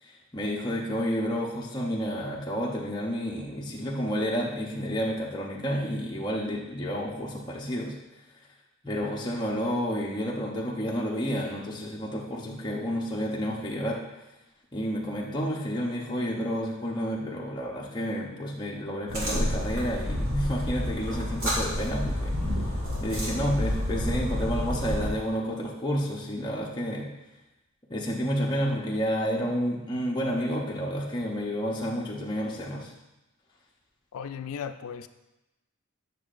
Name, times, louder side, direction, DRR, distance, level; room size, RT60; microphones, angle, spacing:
voice 1, 0.0-7.9 8.8-14.0 14.7-22.6 23.0-27.1 27.9-32.9, equal, 20° left, -4 dB, 0.7 m, -30 dB
sound 1, 19.1-25.1, left 1 dB, 65° right, 2.1 m, -29 dB
voice 2, 34.1-35.1, left 7 dB, 75° left, 10 dB, 0.4 m, -36 dB
8.3 x 6.1 x 2.5 m, 0.98 s
head